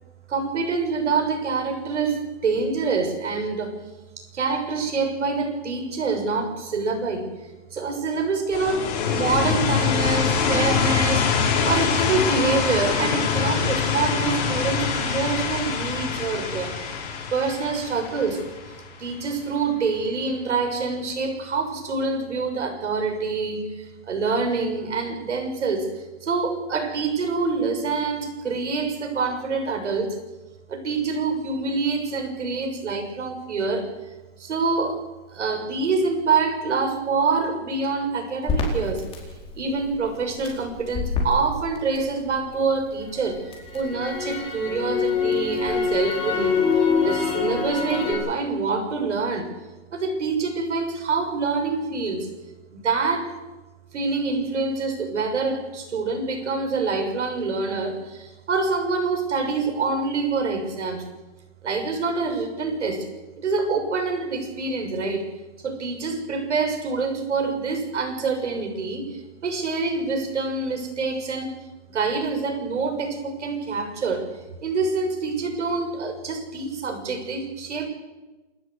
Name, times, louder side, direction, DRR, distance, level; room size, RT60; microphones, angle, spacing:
voice 1, 0.3-3.8 4.2-7.3 7.7-16.8 17.3-18.5 19.0-25.9 26.2-30.2 30.7-33.9 34.4-35.0 35.3-39.1 39.5-43.4 43.7-46.6 47.0-49.5 49.9-52.3 52.7-53.3 53.9-61.1 61.6-63.1 63.4-65.3 65.6-71.5 71.9-74.3 74.6-77.9, right 4 dB, 85° right, 4 dB, 6.5 m, -26 dB
sound 1, 8.5-19.2, left 6 dB, 35° left, 5.1 m, -24 dB
Crackle, 38.5-42.6 43.0-48.1, left 5 dB, 15° left, 4.3 m, -25 dB
28.5 x 13.0 x 8.1 m, 1.1 s
hypercardioid pair, 155°, 35 cm